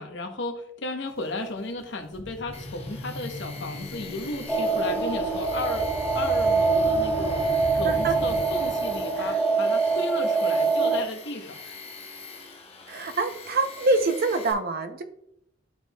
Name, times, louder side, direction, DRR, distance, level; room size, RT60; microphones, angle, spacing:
voice 1, 0.0-5.9 6.1-7.5 7.8-11.6, left 2 dB, 65° left, 6 dB, 0.9 m, -34 dB
sound 1, 1.1-1.2 1.7-9.4, left 1 dB, 30° right, 1.9 m, -38 dB
Tools, 2.5-14.5, left 4 dB, 30° left, 0.9 m, -43 dB
sound 2, 4.5-11.0, right 4 dB, ahead, 1.1 m, -24 dB
voice 2, 12.9-15.0, right 3 dB, 50° right, 8 dB, 0.6 m, -25 dB
10.5 x 4.5 x 2.2 m, 0.76 s
head